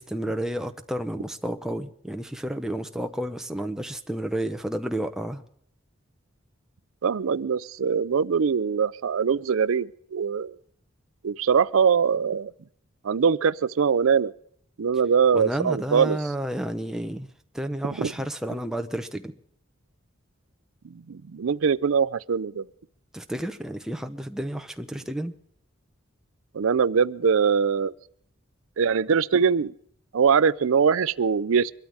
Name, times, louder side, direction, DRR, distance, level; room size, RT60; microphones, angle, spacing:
voice 1, 0.0-5.4 15.3-17.3 17.5-19.3 23.1-25.3, right 1 dB, 5° right, 0.8 m, -31 dB
voice 2, 7.0-10.6 11.2-12.5 13.0-14.3 14.8-16.2 18.0-18.1 21.1-22.6 26.5-27.9 28.8-29.7 30.1-31.7, right 6 dB, 85° right, 0.5 m, -22 dB
23.5 x 13.0 x 3.5 m
head